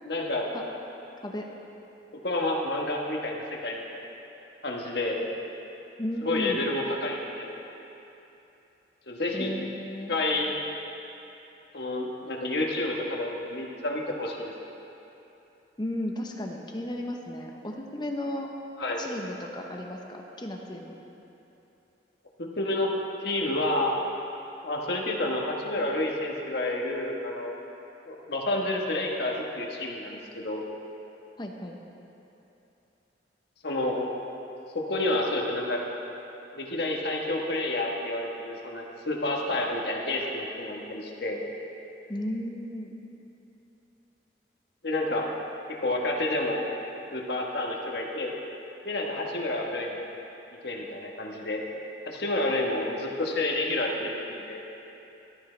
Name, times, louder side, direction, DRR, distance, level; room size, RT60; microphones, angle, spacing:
voice 1, 0.1-0.5 2.2-4.0 4.6-5.2 6.2-7.6 9.1-9.5 10.1-10.6 11.7-14.5 18.8-19.0 22.4-22.9 23.2-23.9 24.6-27.5 28.1-30.6 33.6-34.1 34.7-35.9 36.5-41.4 44.8-45.3 45.7-46.6 47.1-48.3 48.8-50.1 50.6-51.6 52.0-54.6, left 2 dB, 60° left, -1 dB, 1.4 m, -29 dB
voice 2, 6.0-6.6 9.3-10.1 15.8-18.5 19.0-21.0 31.4-31.8 42.1-42.9, left 1 dB, 25° left, 1 dB, 0.9 m, -34 dB
14.5 x 12.5 x 3.4 m, 3.0 s
head